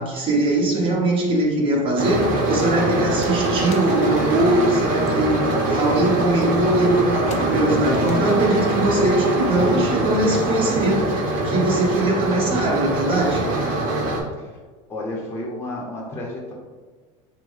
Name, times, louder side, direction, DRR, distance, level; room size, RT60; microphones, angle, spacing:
voice 1, 0.0-13.4, right 1 dB, 30° right, -3 dB, 1.4 m, -21 dB
sound 1, 2.0-14.2, right 2 dB, 55° right, 1.0 m, -23 dB
sound 2, 3.0-3.9 4.3-5.7 6.2-6.7 7.2-7.6 8.0-8.2 8.8-9.7, left 4 dB, 40° left, 0.6 m, -39 dB
voice 2, 14.9-16.5, left 1 dB, 15° left, -4 dB, 0.9 m, -31 dB
5.9 x 2.2 x 3.2 m, 1.4 s
supercardioid pair, 115°, 17 cm